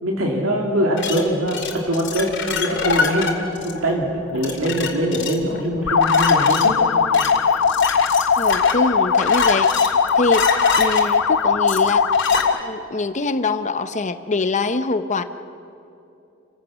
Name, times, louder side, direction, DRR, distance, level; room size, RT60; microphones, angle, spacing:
voice 1, 0.0-3.3 3.6-6.8, equal, 75° right, 0 dB, 2.5 m, -22 dB
sound 1, 1.0-12.4, left 5 dB, 60° left, 2.6 m, -26 dB
sound 2, 5.9-12.7, left 6 dB, 90° left, 0.8 m, -18 dB
voice 2, 8.4-12.1 12.6-15.2, left 3 dB, 35° left, 11 dB, 0.7 m, -24 dB
29.5 x 15.5 x 6.2 m, 2.8 s
head